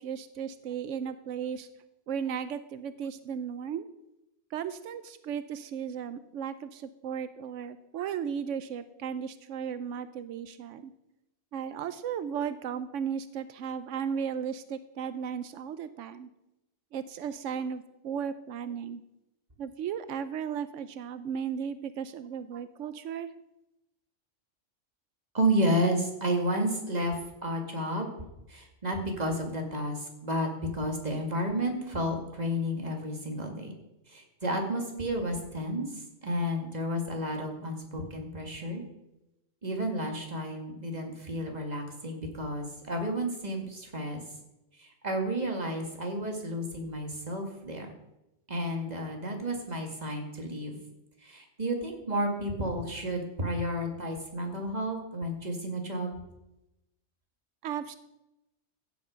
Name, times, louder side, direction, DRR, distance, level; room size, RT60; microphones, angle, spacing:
voice 1, 0.0-1.7 2.1-3.9 4.5-10.9 11.5-16.3 16.9-19.0 19.6-23.3 57.6-58.0, right 7 dB, 90° right, 12 dB, 1.0 m, -35 dB
voice 2, 25.3-28.1 28.5-33.7 34.1-38.8 39.6-44.2 44.7-47.9 48.5-50.8 51.2-56.2, equal, 35° right, 2 dB, 2.3 m, -31 dB
15.5 x 8.2 x 5.1 m, 0.91 s
omnidirectional pair, 1.2 m